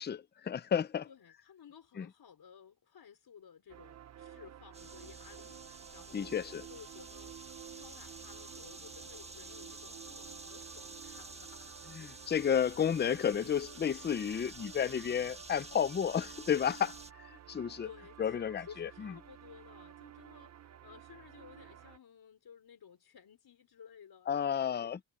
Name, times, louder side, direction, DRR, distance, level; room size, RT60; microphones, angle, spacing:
voice 1, 0.0-1.1 2.0-2.1 6.1-6.7 11.9-17.9 18.2-19.1 24.3-25.0, left 8 dB, 25° left, 0.5 m, -32 dB
voice 2, 1.0-5.6 5.9-6.3 6.7-7.3 7.7-12.2 12.7-12.8 17.8-24.9, left 7 dB, 70° left, 5.0 m, -55 dB
sound 1, 3.7-22.0, right 10 dB, 45° right, 0.5 m, -53 dB
sound 2, 4.7-17.1, right 2 dB, 15° right, 1.6 m, -50 dB
wide cardioid pair, 110°, 39 cm